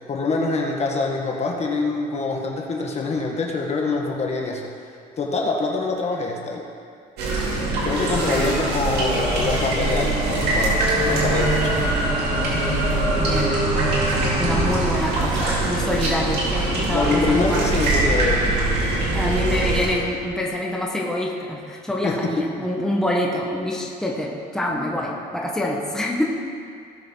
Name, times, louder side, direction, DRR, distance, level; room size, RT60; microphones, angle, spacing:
voice 1, 0.1-4.7 5.2-6.6 7.8-10.8 11.1-11.7 16.8-18.5 22.0-22.5, left 3 dB, 40° left, 0 dB, 1.6 m, -25 dB
sound 1, 7.2-19.9, right 2 dB, 75° right, 3.1 m, -22 dB
voice 2, 8.1-8.5 13.2-17.6 19.1-26.2, left 1 dB, 5° left, -2 dB, 1.4 m, -26 dB
18.0 x 6.8 x 4.0 m, 2.4 s
cardioid pair, 110°, 17 cm